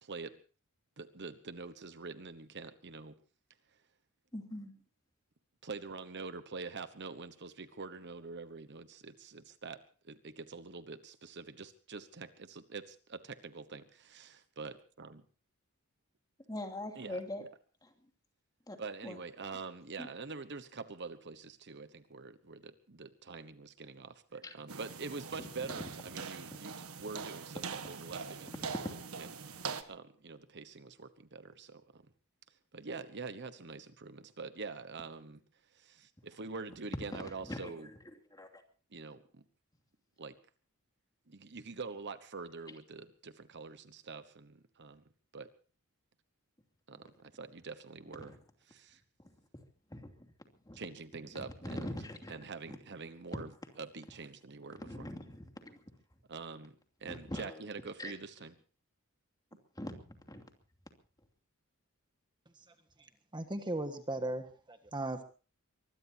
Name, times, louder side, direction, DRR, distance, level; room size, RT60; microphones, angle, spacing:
voice 1, 0.0-0.4 1.0-3.1 5.6-15.2 16.9-17.5 18.8-28.6 29.2-29.3 29.9-32.0 32.7-35.4 35.7-37.9 38.9-39.4 40.2-40.4 41.3-45.0 45.3-45.5 46.9-48.4 48.6-49.0 50.7-52.0 52.3-53.5 53.8-55.1 56.3-56.7 57.0-58.5, right 4 dB, 55° right, 11 dB, 1.1 m, -45 dB
voice 2, 4.3-4.8 16.5-17.4 17.8-17.9 18.7-18.8 19.0-19.2 20.0-20.1 24.4-24.5 37.5-37.9 38.3-38.5 48.2-48.4 49.9-50.3 50.7-50.8 51.3-52.3 52.7-52.8 54.8-55.8 57.1-57.6 58.0-58.1 59.8-60.4, left 1 dB, 20° left, 4 dB, 2.8 m, -43 dB
sound 1, 24.7-29.8, right 5 dB, 85° right, 1.6 m, -43 dB
voice 3, 63.3-65.2, right 1 dB, 20° right, 7 dB, 1.6 m, -37 dB
24.0 x 21.0 x 2.8 m, 0.38 s
head